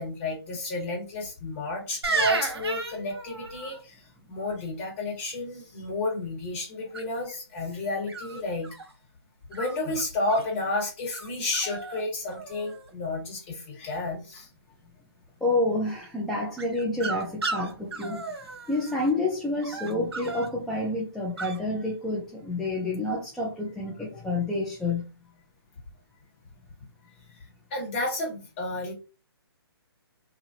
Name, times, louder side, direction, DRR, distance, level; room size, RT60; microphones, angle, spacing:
voice 1, 0.0-8.7 9.5-14.5 27.7-28.9, left 2 dB, 30° left, 1.6 m, -31 dB
sound 1, 2.0-3.8 6.9-7.4 8.1-8.9 9.5-10.5 11.1-11.3 11.5-12.0 12.3-12.9 16.6-19.1 19.6-20.5 21.4-21.6, right 3 dB, 80° right, 1.1 m, -33 dB
voice 2, 15.4-18.2 18.7-25.0, left 2 dB, 5° left, 0.4 m, -28 dB
2.7 x 2.7 x 2.7 m
hypercardioid pair, 145°, 13 cm